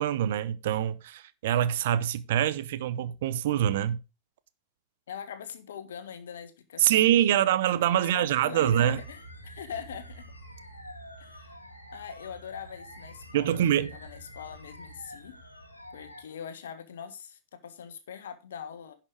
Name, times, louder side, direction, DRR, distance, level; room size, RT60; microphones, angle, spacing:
voice 1, 0.0-4.0 6.8-9.0 13.3-13.9, right 11 dB, 55° right, 0.8 m, -25 dB
voice 2, 5.1-7.4 7.8-10.3 11.2-11.6 11.9-15.3 15.9-19.0, left 8 dB, 65° left, 1.5 m, -42 dB
sound 1, 8.6-16.2, equal, 85° left, 1.6 m, -47 dB
11.0 x 5.9 x 4.9 m
figure-of-eight pair, 90°, 0 cm